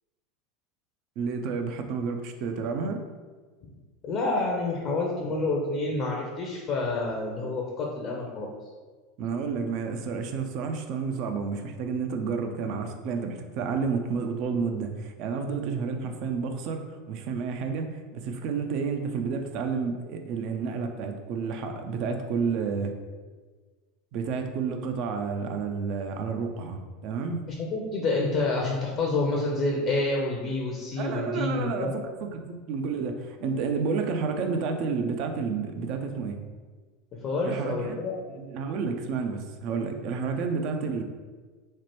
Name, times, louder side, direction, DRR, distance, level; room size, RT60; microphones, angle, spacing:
voice 1, 1.2-3.0 9.2-22.9 24.1-27.4 30.9-36.4 37.4-38.0 38.3-41.0, right 5 dB, 55° right, 5 dB, 0.3 m, -30 dB
voice 2, 4.0-8.5 27.5-31.9 37.2-38.1, left 2 dB, 45° left, -1 dB, 0.5 m, -28 dB
3.2 x 2.1 x 2.9 m, 1.4 s
hypercardioid pair, 85°, 0 cm